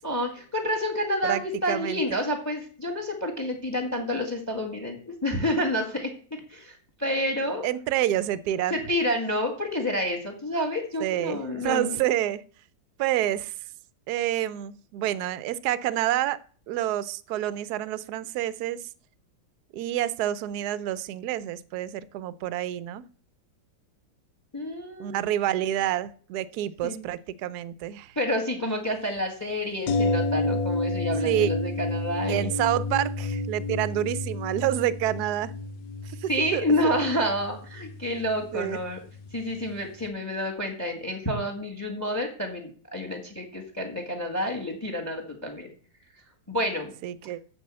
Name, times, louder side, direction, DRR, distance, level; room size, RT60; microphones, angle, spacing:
voice 1, 0.0-7.6 8.7-12.0 24.5-25.2 26.8-27.0 28.1-32.5 36.3-39.0 39.3-45.7 46.5-46.9, left 1 dB, 10° left, 5 dB, 1.5 m, -29 dB
voice 2, 1.7-2.2 7.6-8.8 11.0-12.4 13.0-13.5 14.1-18.9 19.7-23.0 25.0-28.2 31.2-31.5 32.3-35.5 36.2-36.9 38.5-38.8 47.0-47.4, right 13 dB, 70° right, 17 dB, 1.0 m, -28 dB
sound 1, 29.9-39.7 40.0-40.1, left 2 dB, 70° left, 1.5 m, -30 dB
8.1 x 6.8 x 7.5 m, 0.43 s
omnidirectional pair, 2.1 m